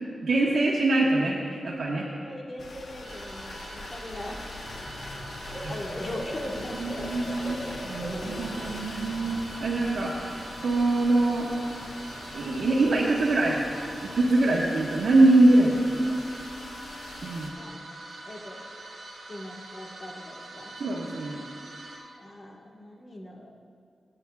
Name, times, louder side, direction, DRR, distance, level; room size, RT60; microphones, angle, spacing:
voice 1, 0.2-2.0 5.6-5.7 6.8-7.6 7.8-11.5 12.3-13.6 14.0-15.8 17.2-17.5 20.8-21.4, right 2 dB, 75° right, -5 dB, 1.2 m, -23 dB
voice 2, 1.8-4.4 5.7-7.6 17.6-17.7 18.2-18.6 19.3-20.7 22.2-23.5, left 1 dB, 40° left, -2 dB, 1.5 m, -40 dB
sound 1, 2.6-17.5, left 2 dB, 65° left, 1.2 m, -43 dB
sound 2, 3.0-22.0, right 2 dB, 55° right, 2.6 m, -44 dB
Bird / Cricket, 4.6-14.3, equal, 10° left, 3.1 m, -42 dB
23.5 x 8.9 x 2.4 m, 2.3 s
wide cardioid pair, 130°, 0 cm